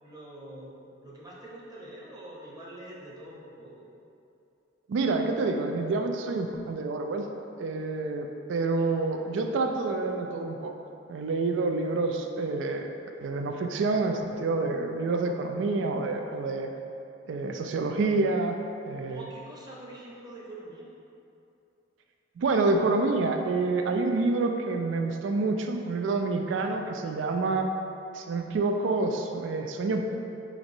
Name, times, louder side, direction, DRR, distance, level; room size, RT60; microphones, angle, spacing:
voice 1, 0.0-3.9 8.8-9.1 19.0-20.9, right 1 dB, 20° right, -5 dB, 0.7 m, -45 dB
voice 2, 4.9-7.3 7.6-10.8 11.1-12.9 13.2-16.7 17.3-18.6 18.9-19.3 22.4-27.7 28.1-30.0, right 3 dB, 90° right, 4 dB, 0.3 m, -28 dB
5.0 x 3.0 x 2.6 m, 2.7 s
head